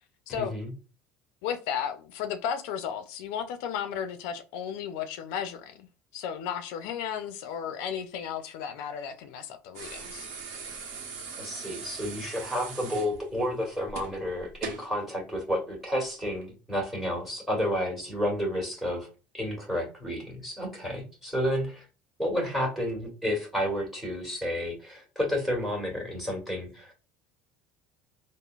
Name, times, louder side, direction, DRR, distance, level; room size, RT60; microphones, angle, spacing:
voice 1, 0.3-0.7 11.4-19.1 19.3-21.9 22.2-26.9, equal, 5° right, 1.4 m, -31 dB
voice 2, 1.4-5.9 6.1-10.3, left 8 dB, 75° left, 0.4 m, -34 dB
sound 1, 9.7-14.9 16.3-16.4, right 5 dB, 75° right, 0.8 m, -40 dB
3.7 x 2.0 x 2.3 m
supercardioid pair, 105°, 5 cm